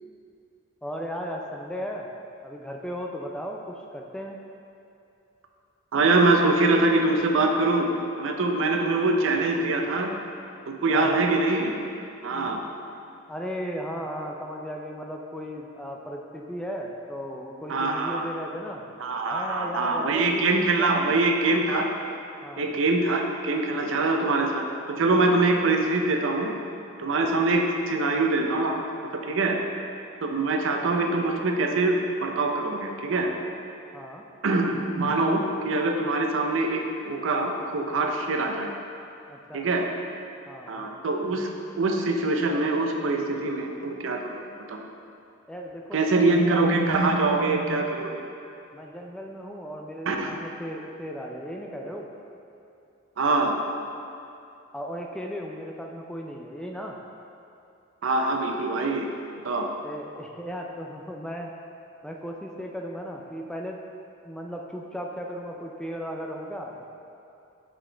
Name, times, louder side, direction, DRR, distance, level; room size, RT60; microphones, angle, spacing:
voice 1, 0.8-2.1 2.4-4.4 10.9-11.2 13.3-18.8 19.3-21.2 22.4-22.7 33.9-34.2 39.3-39.7 40.5-41.0 45.5-46.7 47.3-47.6 48.7-52.1 54.7-57.0 59.8-61.5 62.0-63.8 64.2-66.9, equal, 5° left, 0 dB, 0.3 m, -36 dB
voice 2, 5.9-10.1 10.7-11.7 12.2-12.6 17.7-18.3 19.0-21.9 22.6-26.5 27.0-28.8 29.1-29.6 30.2-33.3 34.4-38.7 39.5-39.9 40.7-41.5 41.8-44.4 44.7-44.8 45.9-48.3 50.1-50.3 53.2-53.6 58.0-59.1 59.4-59.7, right 2 dB, 70° right, 3 dB, 0.5 m, -24 dB
5.9 x 4.9 x 3.4 m, 2.7 s
head